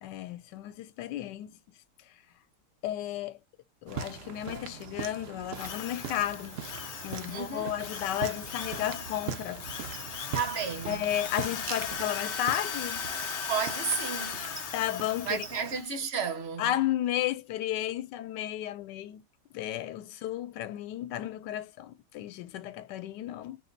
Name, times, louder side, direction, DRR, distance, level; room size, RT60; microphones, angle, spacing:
voice 1, 0.0-1.6 2.8-3.4 3.8-6.6 7.0-9.7 10.9-13.1 14.7-15.5 16.6-19.2 19.5-23.6, left 12 dB, 85° left, 1.2 m, -33 dB
sound 1, 3.9-15.8, right 7 dB, 90° right, 0.5 m, -41 dB
Drill, 5.5-16.0, left 7 dB, 65° left, 0.7 m, -38 dB
voice 2, 7.3-7.7 10.3-11.0 13.5-14.5 15.2-16.7, right 6 dB, 50° right, 0.8 m, -32 dB
4.6 x 2.1 x 3.8 m
omnidirectional pair, 1.8 m